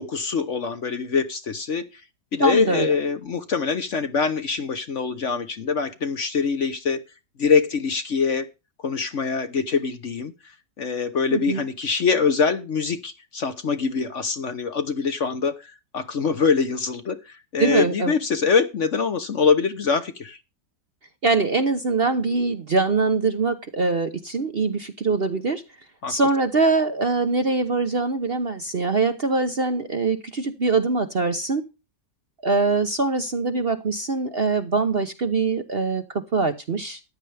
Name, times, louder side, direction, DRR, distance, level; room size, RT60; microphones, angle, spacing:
voice 1, 0.0-2.0 2.3-7.0 7.4-8.5 8.8-20.4 26.0-26.1, left 5 dB, 50° left, 1.2 m, -24 dB
voice 2, 2.4-2.9 11.3-11.6 17.6-18.2 21.2-25.6 26.1-31.6 32.4-37.1, right 3 dB, 40° right, 1.0 m, -23 dB
14.5 x 10.5 x 3.4 m
omnidirectional pair, 1.9 m